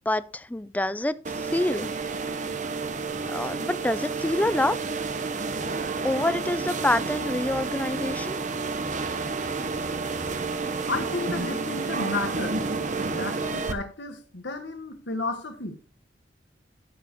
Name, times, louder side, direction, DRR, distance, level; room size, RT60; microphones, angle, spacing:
voice 1, 0.1-1.9 3.3-4.8 6.0-8.4, left 1 dB, 10° left, 0.4 m, -27 dB
sound 1, 1.2-13.7, right 4 dB, 45° right, 1.0 m, -30 dB
voice 2, 10.8-12.6 13.0-15.8, left 3 dB, 75° left, 1.5 m, -32 dB
14.0 x 7.2 x 3.0 m
head